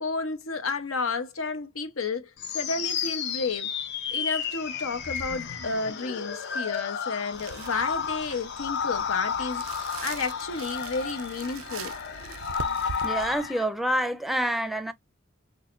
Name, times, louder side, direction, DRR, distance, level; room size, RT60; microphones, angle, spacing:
voice 1, 0.0-3.7 4.1-9.6 10.0-12.0, left 4 dB, 90° left, 0.9 m, -31 dB
sound 1, 2.4-13.6, left 7 dB, 55° left, 0.7 m, -32 dB
sound 2, 7.3-13.5, right 7 dB, 90° right, 0.5 m, -42 dB
voice 2, 13.0-14.9, right 1 dB, ahead, 0.5 m, -27 dB
6.2 x 2.1 x 2.5 m
head